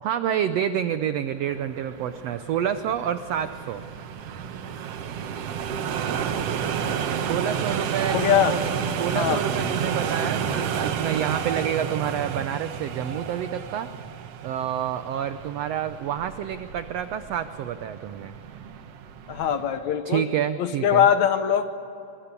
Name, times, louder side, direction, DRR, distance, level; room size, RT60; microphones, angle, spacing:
voice 1, 0.0-3.8 7.2-8.7 9.0-13.9 14.4-18.3 20.0-21.1, right 9 dB, 80° right, 10 dB, 1.4 m, -28 dB
sound 1, 1.5-19.8, right 7 dB, 60° right, 1.8 m, -31 dB
voice 2, 8.1-8.6 9.1-9.4 19.3-20.2 20.6-21.7, left 9 dB, 65° left, 9 dB, 2.1 m, -21 dB
26.5 x 23.5 x 8.3 m, 2.8 s
omnidirectional pair, 3.8 m